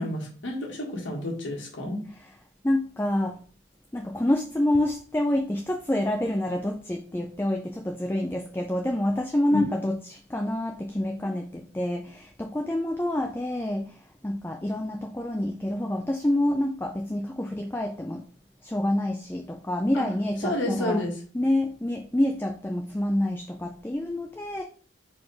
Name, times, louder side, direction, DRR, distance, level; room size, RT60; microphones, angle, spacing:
voice 1, 0.0-2.0 9.5-9.7 19.9-20.0 20.4-21.1, left 1 dB, 75° left, -1 dB, 1.7 m, -30 dB
voice 2, 2.6-3.4 3.9-18.2 18.6-21.0 21.3-24.6, left 1 dB, 10° left, 3 dB, 0.4 m, -27 dB
4.8 x 4.2 x 4.8 m, 0.42 s
head